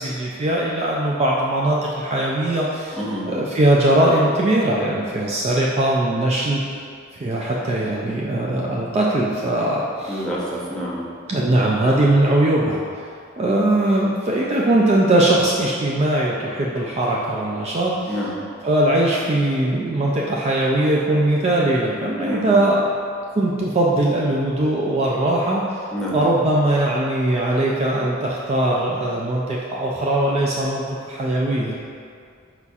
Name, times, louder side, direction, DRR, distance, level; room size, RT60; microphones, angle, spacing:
voice 1, 0.0-6.6 7.2-10.3 11.3-12.8 13.4-18.3 18.6-22.9 23.4-25.6 26.1-31.7, right 1 dB, 30° right, -4 dB, 0.4 m, -20 dB
voice 2, 3.0-3.3 10.1-11.0 18.1-18.4 22.2-22.5 25.9-26.2, equal, 5° left, -7 dB, 0.8 m, -27 dB
5.5 x 4.1 x 2.4 m, 2.3 s
head